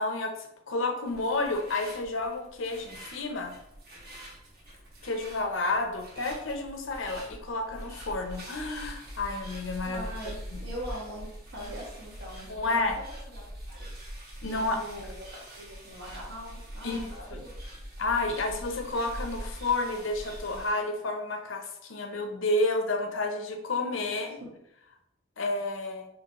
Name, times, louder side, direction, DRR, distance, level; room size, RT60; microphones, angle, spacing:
voice 1, 0.0-3.5 5.0-10.0 10.5-10.6 12.5-13.0 14.4-15.1 16.8-17.5 18.0-24.4 25.4-26.1, left 2 dB, 80° left, 5 dB, 0.7 m, -30 dB
sound 1, 1.0-20.7, equal, 55° right, 1.7 m, -43 dB
voice 2, 9.8-13.9 14.4-17.5 24.1-24.2 24.4-24.5, equal, 80° right, -3 dB, 1.5 m, -42 dB
5.2 x 2.9 x 3.0 m, 0.80 s
head